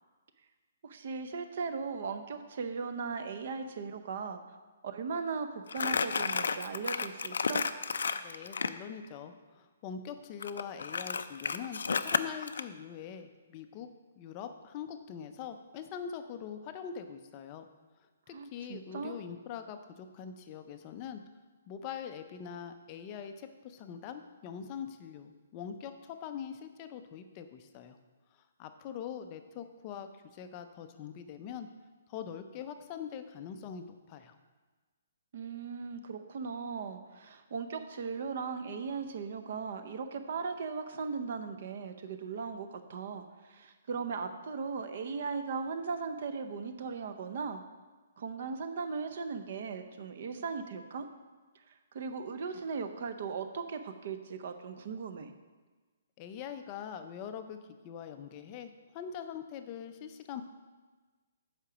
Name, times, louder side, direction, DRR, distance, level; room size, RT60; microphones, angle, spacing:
voice 1, 0.8-4.4 4.8-7.6 18.3-19.2 35.3-47.6 48.2-51.1 51.7-55.3, right 5 dB, 40° right, 9 dB, 0.7 m, -38 dB
Crumpling crinkling, 5.7-8.8 10.4-12.6, left 5 dB, 85° left, 0.4 m, -32 dB
voice 2, 8.2-13.9 14.2-17.6 18.3-21.2 21.7-28.0 28.6-31.7 32.1-34.4 56.2-57.6 57.8-60.4, left 8 dB, 20° left, 8 dB, 0.4 m, -43 dB
8.5 x 5.0 x 6.0 m, 1.3 s
hypercardioid pair, 175°, 0 cm